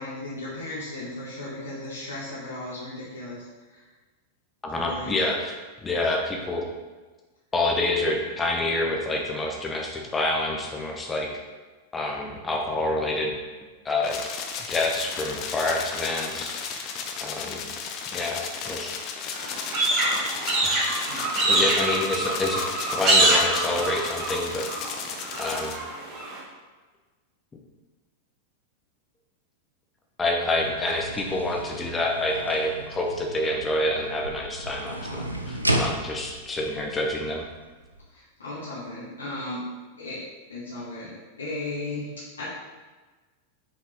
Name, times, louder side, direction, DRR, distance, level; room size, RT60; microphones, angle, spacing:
voice 1, 0.0-3.4 3.7-3.8 4.8-5.2 21.1-21.2 21.5-21.6 38.1-39.6 40.0-42.4, left 2 dB, 75° left, -12 dB, 1.9 m, -36 dB
voice 2, 4.6-5.5 5.8-6.6 7.5-11.3 11.9-13.3 13.8-14.2 14.7-16.9 17.2-17.6 18.1-18.9 20.6-20.8 21.4-22.6 22.9-24.7 25.4-25.7 30.2-37.4, left 2 dB, 15° left, 0 dB, 1.1 m, -27 dB
sound 1, 14.0-25.8, left 6 dB, 40° left, 0.6 m, -35 dB
sound 2, 19.3-26.4, right 2 dB, 35° right, 1.8 m, -25 dB
sound 3, 30.6-38.1, right 1 dB, 85° right, 0.5 m, -33 dB
5.9 x 4.8 x 3.8 m, 1.3 s
figure-of-eight pair, 90°, 0 cm